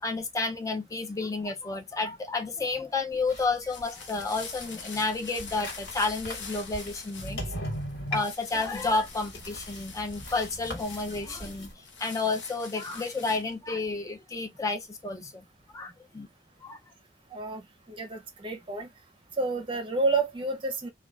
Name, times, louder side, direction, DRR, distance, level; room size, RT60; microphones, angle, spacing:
voice 1, 0.0-7.4 8.1-15.5 15.7-16.3 16.6-16.8, left 3 dB, 20° left, 0.4 m, -31 dB
sound 1, 3.1-11.7, equal, 65° left, 1.4 m, -40 dB
sound 2, 3.4-13.6, left 5 dB, 90° left, 0.7 m, -45 dB
voice 2, 17.3-18.9 19.4-20.9, right 3 dB, 30° right, 0.7 m, -30 dB
2.4 x 2.3 x 3.0 m
head